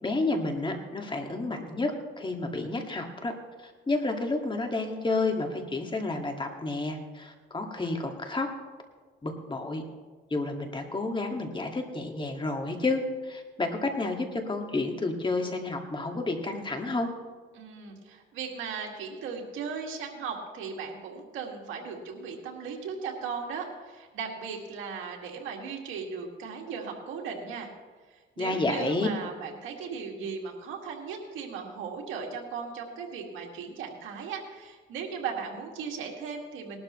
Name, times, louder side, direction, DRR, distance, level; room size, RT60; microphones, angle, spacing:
voice 1, 0.0-3.3 3.6-8.5 9.2-9.8 10.3-17.1 28.4-29.1, left 2 dB, 25° left, 3 dB, 2.0 m, -30 dB
voice 2, 17.5-27.7 28.1-36.8, right 5 dB, 80° right, 0 dB, 2.2 m, -37 dB
19.0 x 12.0 x 3.2 m, 1.4 s
cardioid pair, 90°, 20 cm